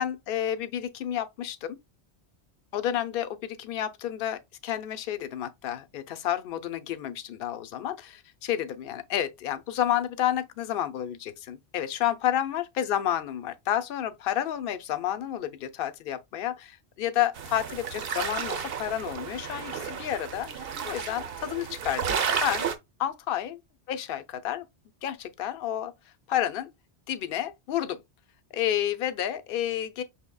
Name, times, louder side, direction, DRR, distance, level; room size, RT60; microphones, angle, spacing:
voice 1, 0.0-1.8 2.7-22.7 23.0-23.6 23.9-24.7 25.0-25.9 26.3-26.7 27.1-28.0 28.5-30.0, left 11 dB, 65° left, 0.7 m, -30 dB
sound 1, 17.3-22.7, right 7 dB, 65° right, 0.9 m, -32 dB
5.8 x 3.6 x 2.2 m
omnidirectional pair, 1.1 m